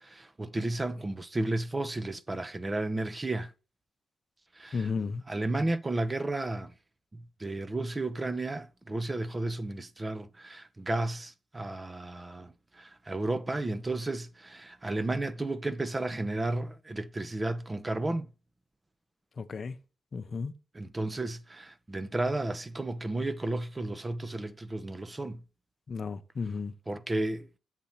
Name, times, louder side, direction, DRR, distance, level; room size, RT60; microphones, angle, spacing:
voice 1, 0.0-3.5 4.6-4.9 5.3-6.7 7.1-18.3 20.7-25.4 26.9-27.6, right 2 dB, 25° right, 0.5 m, -33 dB
voice 2, 4.7-5.2 19.4-19.8 20.1-20.5 25.9-26.7, left 5 dB, 50° left, 0.6 m, -33 dB
7.4 x 2.9 x 5.5 m
cardioid pair, 65°, 0 cm